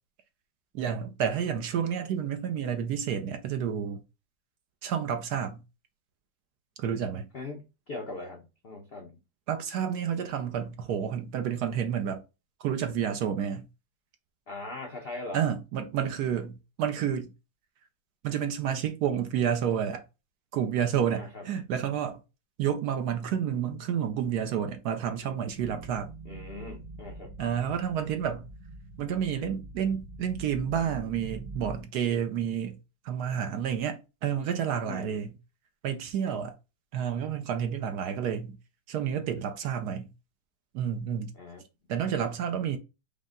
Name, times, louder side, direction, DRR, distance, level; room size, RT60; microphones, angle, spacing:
voice 1, 0.7-4.0 4.8-5.6 6.8-7.3 9.5-12.2 12.6-13.6 15.3-17.3 18.2-20.0 20.5-22.2 22.6-26.1 27.4-28.5 29.0-32.8 33.0-35.3 35.8-36.5 36.9-38.6 38.9-40.1 40.7-41.3 41.9-42.8, right 8 dB, 70° right, 1.0 m, -30 dB
voice 2, 7.3-9.2 14.5-15.4 21.1-21.4 26.2-27.3 34.8-35.2 41.3-41.6, left 2 dB, 65° left, 0.5 m, -40 dB
sound 1, 25.5-31.8, right 2 dB, 85° right, 1.4 m, -44 dB
5.2 x 2.1 x 3.6 m
omnidirectional pair, 2.0 m